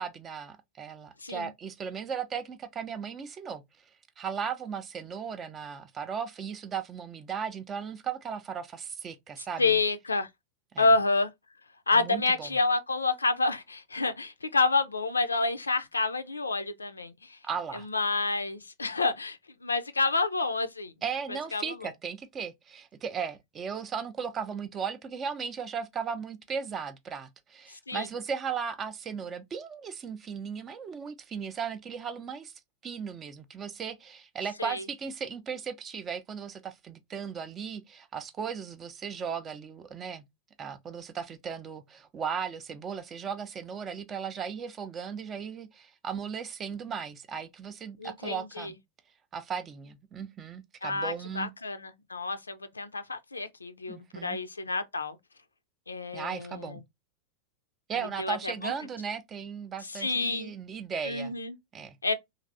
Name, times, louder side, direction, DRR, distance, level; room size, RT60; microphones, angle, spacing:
voice 1, 0.0-3.6 4.2-9.8 10.7-10.9 11.9-12.5 17.4-17.9 21.0-32.5 32.8-40.2 40.6-48.8 49.3-51.5 53.9-54.4 56.1-56.8 57.9-61.3 61.7-62.0, right 6 dB, 25° right, 0.5 m, -36 dB
voice 2, 9.6-10.3 10.8-11.3 11.9-17.4 17.7-20.9 21.3-21.9 27.7-28.1 34.6-34.8 48.0-48.7 50.8-55.2 55.9-56.8 58.0-58.7 59.8-60.5 61.0-61.6 62.0-62.1, left 3 dB, 80° left, 0.4 m, -29 dB
3.1 x 2.5 x 2.5 m
figure-of-eight pair, 90°, 0 cm